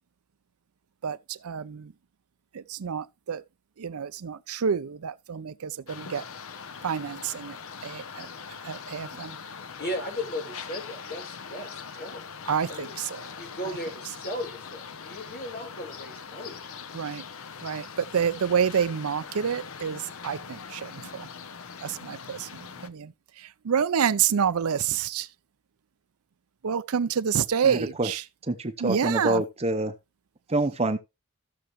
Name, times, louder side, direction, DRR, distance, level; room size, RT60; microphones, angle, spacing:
voice 1, 1.0-1.9 2.5-3.4 3.8-6.2 6.8-9.4 12.5-13.3 16.9-17.2 17.6-21.3 21.8-25.3 26.6-28.2 28.8-29.4, right 7 dB, 75° right, 0.5 m, -28 dB
sound 1, 5.9-22.9, left 6 dB, 65° left, 0.8 m, -42 dB
voice 2, 9.8-12.2 12.7-12.9 13.3-16.6, left 1 dB, 45° left, 3.7 m, -36 dB
voice 3, 27.6-28.1 28.5-29.9 30.5-31.0, right 2 dB, 30° right, 0.8 m, -26 dB
14.0 x 6.8 x 3.0 m
head